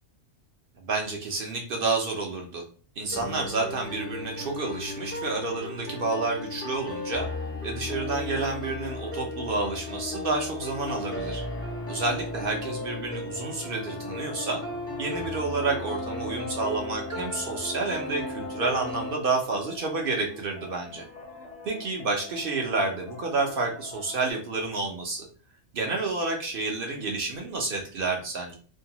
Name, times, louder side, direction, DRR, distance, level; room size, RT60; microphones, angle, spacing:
voice 1, 0.8-2.6 3.0-7.3 7.6-11.4 11.9-14.6 15.0-21.0 21.6-25.3 25.7-28.5, right 3 dB, 60° right, 1 dB, 0.6 m, -29 dB
sound 1, 3.1-19.1, left 2 dB, 20° left, 0.4 m, -35 dB
sound 2, 8.0-24.3, left 3 dB, 70° left, 1.0 m, -45 dB
2.6 x 2.2 x 2.8 m, 0.41 s
omnidirectional pair, 1.3 m